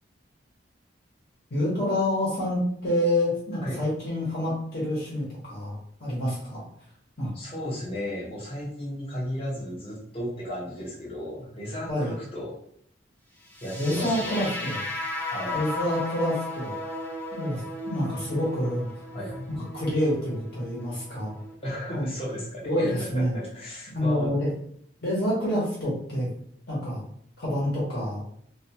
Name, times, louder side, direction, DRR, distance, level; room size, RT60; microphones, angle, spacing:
voice 1, 1.5-6.6 7.2-7.3 11.9-12.2 13.8-14.8 15.5-16.8 17.3-17.6 17.9-19.0 19.7-21.4 21.9-22.1 22.6-23.4 23.9-24.5 25.0-26.3 26.7-27.0 27.4-28.2, left 1 dB, 55° left, -6 dB, 1.0 m, -27 dB
voice 2, 7.3-12.6 13.6-14.5 15.3-15.7 19.1-19.5 21.6-24.3, equal, 30° left, -5 dB, 0.8 m, -34 dB
sound 1, 13.5-21.5, left 2 dB, 10° left, 0.4 m, -35 dB
2.5 x 2.3 x 2.7 m, 0.65 s
head